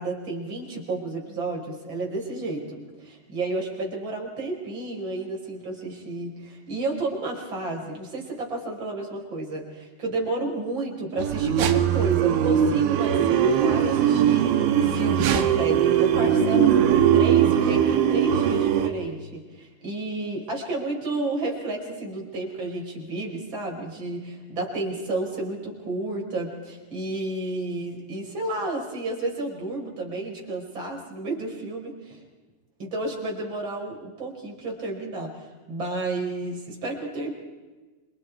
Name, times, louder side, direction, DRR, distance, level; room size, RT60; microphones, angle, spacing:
voice 1, 0.0-32.2 32.8-37.3, right 2 dB, 25° right, 0 dB, 5.2 m, -31 dB
sound 1, 11.2-18.9, right 9 dB, 70° right, 3.7 m, -20 dB
28.5 x 26.5 x 4.8 m, 1.3 s
omnidirectional pair, 5.9 m